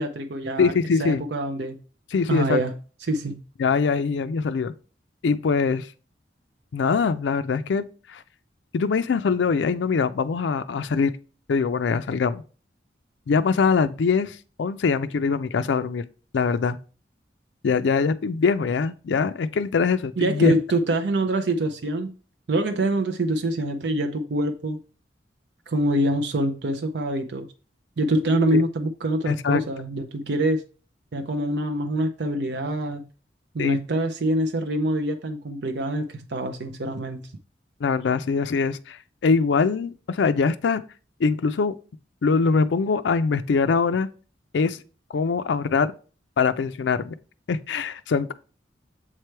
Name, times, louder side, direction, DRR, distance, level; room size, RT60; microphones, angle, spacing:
voice 1, 0.0-0.7 1.0-1.8 2.3-2.7 3.1-3.3 20.2-22.1 22.5-24.8 25.7-27.5 28.0-30.6 31.1-33.1 33.5-37.3, right 1 dB, 65° right, 0.5 m, -25 dB
voice 2, 0.6-1.2 2.1-2.6 3.6-4.7 5.2-5.9 6.7-8.2 8.7-11.1 11.5-12.4 13.3-16.0 16.3-16.8 17.6-20.5 28.5-28.6 29.3-29.6 33.6-33.8 37.8-40.8 41.2-41.8 42.2-44.1 44.5-44.8 45.1-45.9 46.4-47.1 47.5-48.3, left 5 dB, 80° left, 0.4 m, -23 dB
7.4 x 3.2 x 4.5 m
head